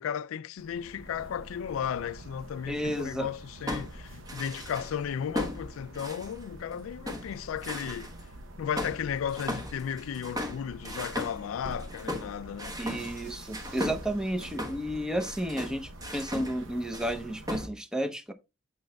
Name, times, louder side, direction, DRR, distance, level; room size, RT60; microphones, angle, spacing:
voice 1, 0.0-8.1 8.6-12.8, left 8 dB, 85° left, 0.3 m, -34 dB
sound 1, 0.6-17.7, right 1 dB, 70° right, 0.8 m, -47 dB
voice 2, 2.7-3.3 12.8-18.3, equal, 5° right, 0.7 m, -32 dB
sound 2, 3.3-5.0 5.4-6.7 7.1-8.2 8.8-16.6 16.9-17.2 17.5-17.7, left 1 dB, 20° right, 1.2 m, -37 dB
7.6 x 6.2 x 2.2 m
head